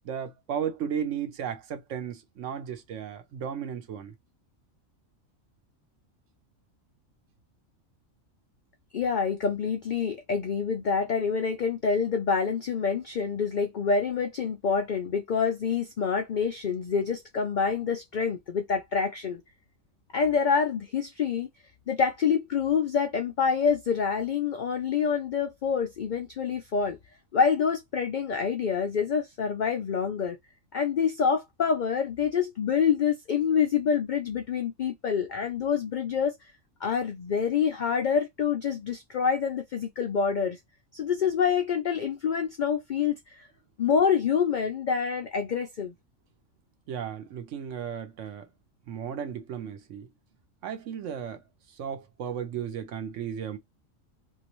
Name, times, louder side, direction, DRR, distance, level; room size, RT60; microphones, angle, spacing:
voice 1, 0.0-4.1 46.9-48.5 48.9-50.1 50.6-51.4 51.7-53.6, right 8 dB, 70° right, 1.0 m, -34 dB
voice 2, 8.9-19.4 20.1-21.5 21.9-27.0 27.3-30.4 30.7-36.3 36.8-40.6 40.9-43.5 43.8-45.9, left 6 dB, 75° left, 0.4 m, -27 dB
3.1 x 2.7 x 2.9 m
omnidirectional pair, 1.4 m